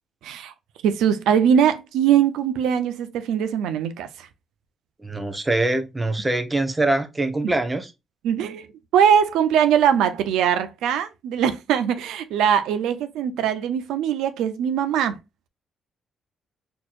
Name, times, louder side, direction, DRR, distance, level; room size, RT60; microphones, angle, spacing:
voice 1, 0.2-0.5 0.8-4.3 7.4-7.5 8.2-15.2, right 8 dB, 90° right, 0.5 m, -21 dB
voice 2, 5.0-7.9, right 2 dB, 15° right, 0.8 m, -23 dB
4.2 x 2.9 x 2.4 m
cardioid pair, 90°, 0 cm